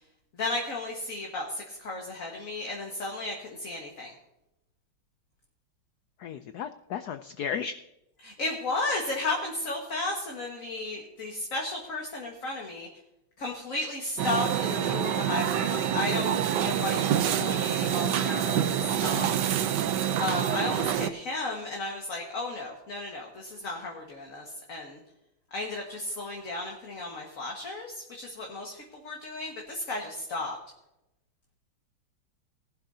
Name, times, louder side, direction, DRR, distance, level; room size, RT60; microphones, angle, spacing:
voice 1, 0.3-4.1 8.2-12.9 13.4-19.3 20.2-25.0 25.5-30.6, left 2 dB, 40° left, 0 dB, 1.9 m, -34 dB
voice 2, 6.2-7.7, left 7 dB, 85° left, 10 dB, 0.8 m, -34 dB
sound 1, 14.2-21.1, right 9 dB, 70° right, 1.1 m, -27 dB
19.0 x 11.5 x 2.7 m, 0.90 s
omnidirectional pair, 2.3 m